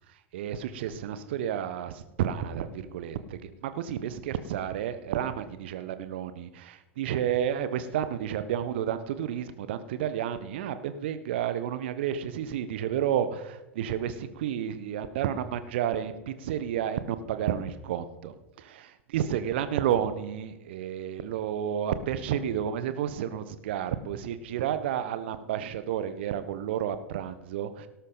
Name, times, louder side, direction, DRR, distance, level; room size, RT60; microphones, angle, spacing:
voice 1, 0.3-18.3 19.1-27.9, right 9 dB, 55° right, 12 dB, 1.2 m, -31 dB
18.0 x 12.5 x 4.0 m, 1.1 s
figure-of-eight pair, 90°, 7 cm